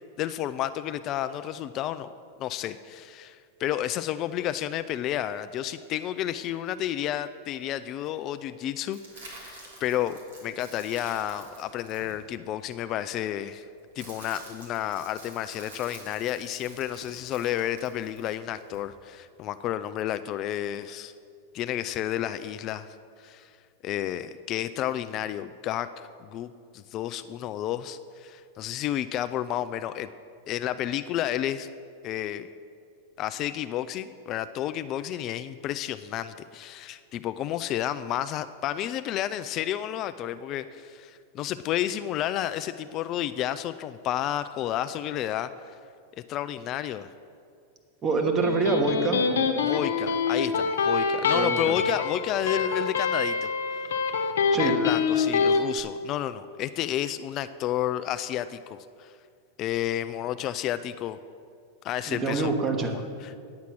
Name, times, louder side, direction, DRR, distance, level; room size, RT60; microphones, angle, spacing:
voice 1, 0.2-2.1 2.4-13.6 14.0-21.1 21.5-23.5 23.8-30.1 30.5-31.7 32.0-32.5 33.2-45.5 46.3-47.1 49.6-53.8 54.6-59.1 59.6-61.2 61.8-62.5 62.8-63.4, left 12 dB, 40° left, 12 dB, 0.3 m, -31 dB
sound 1, 8.9-12.7 13.5-18.8, right 2 dB, 90° right, 2.9 m, -48 dB
voice 2, 48.0-49.2 51.3-51.8 54.5-54.8 62.1-63.0, right 4 dB, 25° right, 4 dB, 1.4 m, -26 dB
Electric guitar, 48.2-55.6, left 5 dB, 90° left, 0.9 m, -25 dB
9.6 x 8.2 x 6.0 m, 2.3 s
hypercardioid pair, 120°, 0 cm